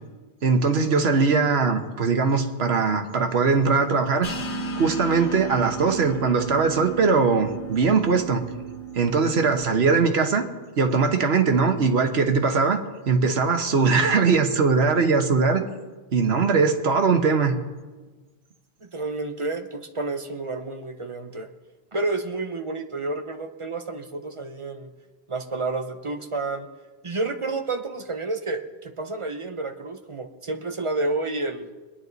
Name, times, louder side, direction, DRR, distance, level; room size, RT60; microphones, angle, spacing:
voice 1, 0.4-4.3 4.7-8.4 8.9-10.4 10.8-12.8 13.1-15.6 16.1-17.6, right 4 dB, 85° right, 5 dB, 1.4 m, -21 dB
sound 1, 4.2-9.6, right 4 dB, 55° left, 1.2 m, -34 dB
voice 2, 18.8-21.5 21.9-24.9 25.3-26.7 27.0-31.7, right 2 dB, 35° right, 6 dB, 0.8 m, -30 dB
22.5 x 9.5 x 4.0 m, 1.3 s
omnidirectional pair, 1.0 m